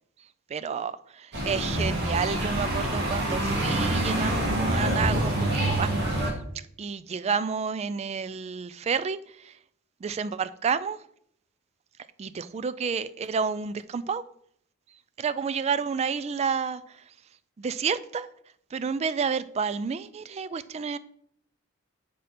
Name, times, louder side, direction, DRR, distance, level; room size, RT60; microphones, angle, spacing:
voice 1, 0.5-6.4 6.8-9.5 10.0-11.0 12.2-14.2 15.2-17.0 17.6-18.3 18.7-21.0, right 6 dB, 30° right, 0.3 m, -30 dB
sound 1, 1.3-6.3, right 1 dB, 55° right, 2.2 m, -26 dB
6.8 x 5.1 x 4.1 m
head